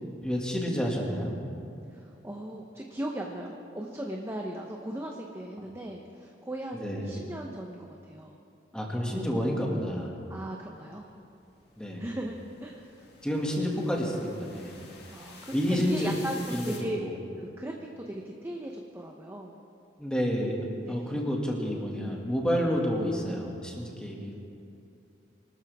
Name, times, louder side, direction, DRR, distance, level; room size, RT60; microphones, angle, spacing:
voice 1, 0.0-1.4 5.6-5.7 6.8-7.1 8.7-10.1 11.8-12.0 13.2-14.7 15.5-16.1 16.5-16.7 17.0-17.1 20.0-20.6 20.9-24.3, equal, 5° left, -2 dB, 2.1 m, -29 dB
voice 2, 1.9-8.4 10.3-11.1 12.0-13.1 15.1-17.0 17.4-19.5 20.8-21.1, right 1 dB, 15° right, 0 dB, 0.9 m, -38 dB
sound 1, 10.8-16.8, left 4 dB, 60° left, 2.4 m, -50 dB
24.5 x 13.0 x 3.6 m, 2.7 s
head